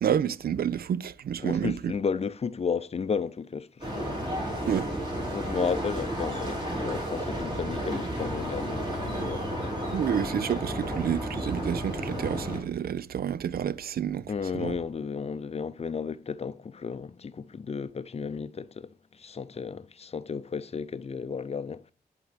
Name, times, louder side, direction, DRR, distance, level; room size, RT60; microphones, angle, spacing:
voice 1, 0.0-1.9 4.6-4.9 9.9-14.8, right 9 dB, 70° right, 0.5 m, -29 dB
voice 2, 1.4-4.3 5.3-9.5 14.3-18.9 19.2-21.8, left 5 dB, 40° left, 0.5 m, -33 dB
sound 1, 3.8-12.6, equal, 30° right, 3.6 m, -32 dB
10.5 x 3.8 x 3.5 m
cardioid pair, 60°, 16 cm